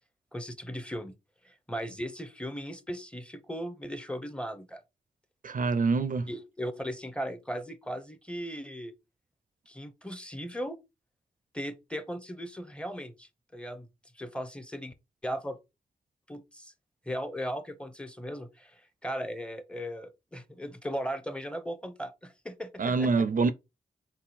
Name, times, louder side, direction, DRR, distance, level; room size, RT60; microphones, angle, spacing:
voice 1, 0.3-1.1 1.4-4.8 6.3-8.9 9.7-10.8 11.5-13.9 14.1-14.9 15.2-15.6 16.3-16.7 17.1-23.3, equal, 5° left, 0.7 m, -37 dB
voice 2, 5.4-6.3 22.8-23.5, right 4 dB, 55° right, 0.4 m, -25 dB
3.7 x 2.2 x 4.2 m
cardioid pair, 50°, 17 cm